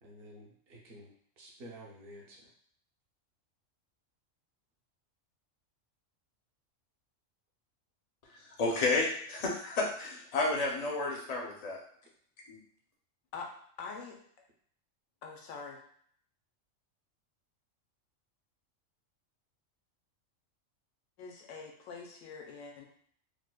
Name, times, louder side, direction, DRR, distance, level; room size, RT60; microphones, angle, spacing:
voice 1, 0.0-2.5, equal, 55° right, -2 dB, 0.9 m, -51 dB
voice 2, 8.3-11.8 12.5-12.6, left 3 dB, 45° left, -1 dB, 0.5 m, -31 dB
voice 3, 13.8-14.2 15.2-15.8 21.2-22.8, left 4 dB, 80° left, 1 dB, 1.0 m, -44 dB
4.6 x 2.1 x 2.2 m, 0.62 s
omnidirectional pair, 1.4 m